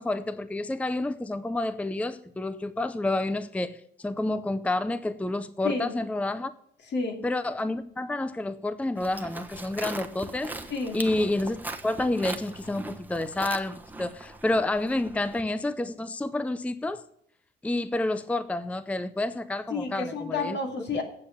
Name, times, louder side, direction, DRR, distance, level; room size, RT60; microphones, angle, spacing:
voice 1, 0.0-6.5 7.2-10.5 10.9-17.0 17.6-20.6, left 2 dB, 5° left, 13 dB, 0.6 m, -29 dB
voice 2, 6.9-7.2 10.7-11.0 19.7-21.0, left 3 dB, 60° left, 4 dB, 2.5 m, -30 dB
Livestock farm animals working animals, 9.0-15.4, right 2 dB, 10° right, 1.1 m, -40 dB
9.2 x 7.3 x 6.9 m, 0.68 s
cardioid pair, 90°, 20 cm